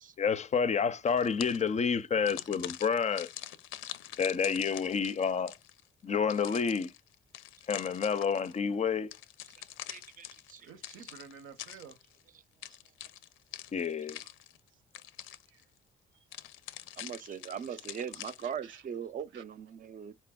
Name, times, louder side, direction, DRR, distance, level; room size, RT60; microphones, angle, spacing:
voice 1, 0.2-3.3 4.2-5.5 6.0-6.9 7.7-9.1 13.7-14.2, left 6 dB, 35° left, 0.4 m, -29 dB
sound 1, 1.1-1.8 2.3-5.8 6.3-8.6 9.1-12.2 12.6-14.7 14.9-15.6 16.3-18.6, left 13 dB, 90° left, 0.5 m, -45 dB
voice 2, 9.9-10.7 11.0-11.1 17.0-20.1, right 8 dB, 45° right, 0.5 m, -40 dB
voice 3, 10.6-12.0 14.2-14.3 15.2-15.6 18.4-18.8 19.3-19.4, right 6 dB, 80° right, 0.8 m, -51 dB
4.5 x 3.3 x 2.2 m
cardioid pair, 90°, 20 cm